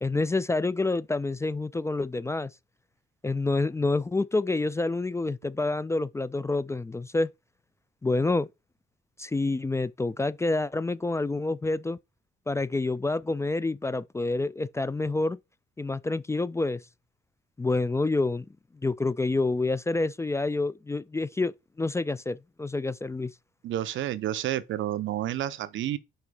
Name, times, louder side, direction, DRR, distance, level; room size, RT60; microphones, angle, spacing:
voice 1, 0.0-2.5 3.2-7.3 8.0-8.5 9.2-12.0 12.5-15.4 15.8-16.8 17.6-18.4 18.8-21.5 21.8-23.3, left 3 dB, 15° left, 0.3 m, -28 dB
voice 2, 23.6-26.0, right 12 dB, 75° right, 0.7 m, -30 dB
5.4 x 4.3 x 4.8 m
cardioid pair, 90°, 20 cm